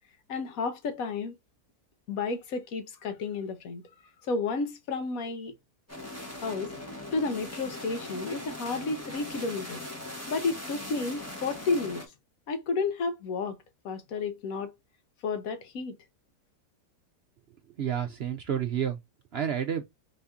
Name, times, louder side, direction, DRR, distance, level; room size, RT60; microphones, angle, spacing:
voice 1, 0.3-1.4 2.1-3.8 4.2-5.6 6.4-6.7 7.1-9.8 10.3-12.0 12.5-13.6 13.8-14.7 15.2-15.9, left 4 dB, 65° left, 1.2 m, -31 dB
sound 1, 5.9-12.1, left 1 dB, 10° left, 0.9 m, -40 dB
voice 2, 17.7-19.0 19.3-19.8, right 9 dB, 70° right, 0.6 m, -30 dB
4.3 x 2.8 x 3.5 m
omnidirectional pair, 1.7 m